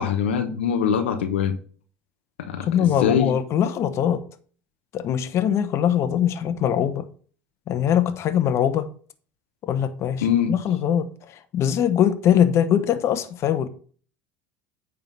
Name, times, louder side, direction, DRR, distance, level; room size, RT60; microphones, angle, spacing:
voice 1, 0.0-1.5 2.4-3.3 10.2-10.5, left 8 dB, 85° left, 1.0 m, -23 dB
voice 2, 2.7-4.2 4.9-7.1 7.7-8.9 9.6-13.7, left 9 dB, 50° left, 1.1 m, -22 dB
9.2 x 3.7 x 6.0 m
hypercardioid pair, 80°, 6 cm